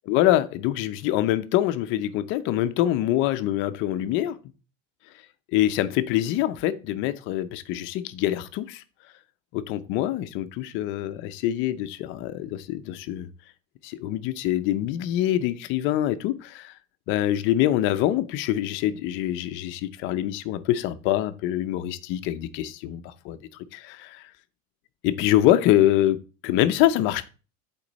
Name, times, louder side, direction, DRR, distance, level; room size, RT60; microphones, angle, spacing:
voice 1, 0.1-4.4 5.5-8.8 9.5-13.3 13.8-16.7 17.1-23.4 23.7-24.2 25.0-26.2 26.4-27.3, left 13 dB, 40° left, 0.6 m, -25 dB
10.5 x 4.5 x 4.0 m
cardioid pair, 180°, 31 cm